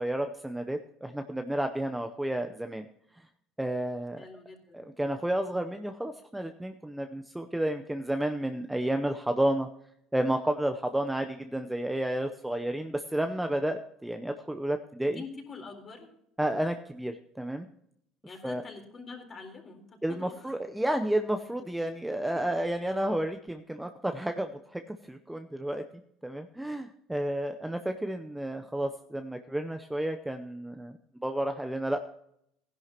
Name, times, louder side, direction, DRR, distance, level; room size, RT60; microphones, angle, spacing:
voice 1, 0.0-2.9 3.6-4.2 4.7-9.7 10.1-15.2 16.4-17.7 18.4-18.6 20.0-25.8 26.2-32.0, right 1 dB, 5° right, 6 dB, 0.7 m, -31 dB
voice 2, 4.2-4.8 15.0-16.1 18.2-20.6 22.3-22.4, left 4 dB, 30° left, 2 dB, 3.9 m, -45 dB
16.5 x 11.0 x 2.9 m, 0.72 s
cardioid pair, 120°, 0 cm